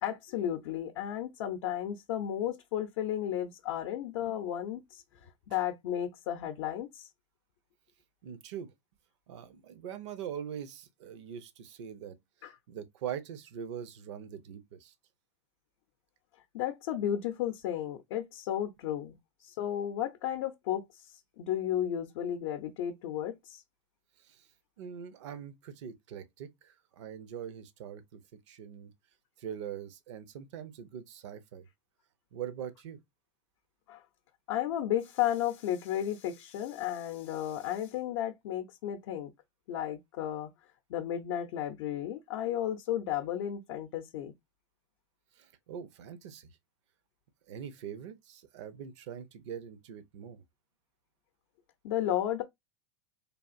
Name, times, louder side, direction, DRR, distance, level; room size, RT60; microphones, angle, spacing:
voice 1, 0.0-7.1 12.4-12.5 16.5-23.6 33.9-34.0 34.5-39.3 39.7-40.5 40.9-44.3 51.8-52.4, left 11 dB, 70° left, 0.5 m, -33 dB
voice 2, 8.2-8.7 9.3-12.1 12.4-14.9 24.2-24.5 24.8-28.2 28.5-28.9 29.4-31.7 32.3-33.0 45.4-46.5 47.5-50.4, right 8 dB, 70° right, 0.6 m, -42 dB
3.4 x 2.4 x 2.5 m
hypercardioid pair, 110°, 16 cm